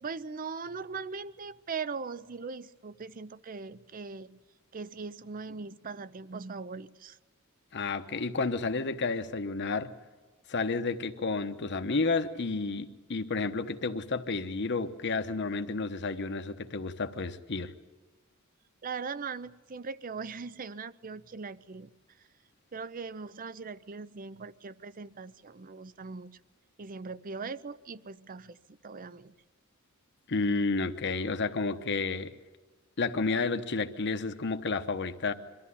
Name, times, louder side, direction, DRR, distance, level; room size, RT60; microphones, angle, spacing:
voice 1, 0.0-4.4 4.7-7.2 18.8-21.9 22.7-26.4 26.8-29.3, right 4 dB, 40° right, 16 dB, 0.6 m, -40 dB
voice 2, 7.7-9.9 10.5-17.7 30.3-32.3 33.0-35.3, left 3 dB, 55° left, 8 dB, 1.0 m, -31 dB
23.5 x 13.5 x 10.0 m, 1.3 s
head